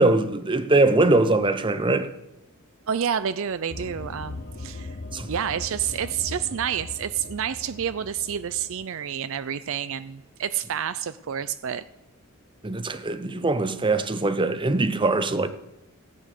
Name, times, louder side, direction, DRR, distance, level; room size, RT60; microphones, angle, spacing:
voice 1, 0.0-2.1 5.1-5.3 12.6-15.5, right 2 dB, 20° right, 0.8 m, -22 dB
voice 2, 2.9-5.0 5.3-11.9, right 8 dB, 60° right, 0.4 m, -29 dB
sound 1, 3.7-8.9, left 2 dB, 45° left, 1.0 m, -39 dB
15.5 x 9.5 x 6.6 m
head